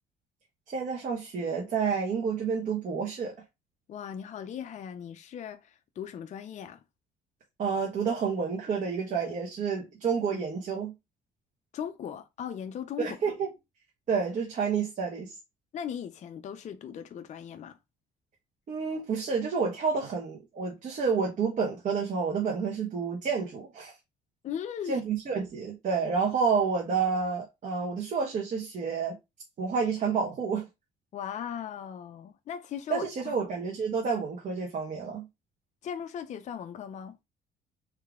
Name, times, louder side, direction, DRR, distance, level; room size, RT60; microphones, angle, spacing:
voice 1, 0.7-3.3 7.6-10.9 13.0-13.5 14.1-15.4 18.7-23.9 24.9-29.2 29.6-30.6 32.9-35.3, right 5 dB, 45° right, 1.4 m, -29 dB
voice 2, 3.9-6.8 11.7-13.2 15.7-17.8 24.4-25.0 31.1-33.4 35.8-37.2, left 8 dB, 45° left, 0.5 m, -38 dB
3.7 x 3.2 x 3.6 m
cardioid pair, 110°, 17 cm